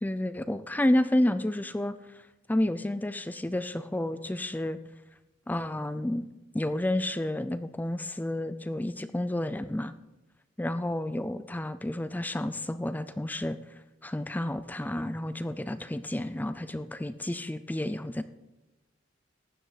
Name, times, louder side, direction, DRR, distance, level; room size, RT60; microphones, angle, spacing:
voice 1, 0.0-2.0 2.5-4.8 5.5-6.3 6.5-9.9 10.6-13.6 14.0-18.2, left 1 dB, 10° left, 12 dB, 0.4 m, -30 dB
15.5 x 10.5 x 4.1 m, 1.0 s
head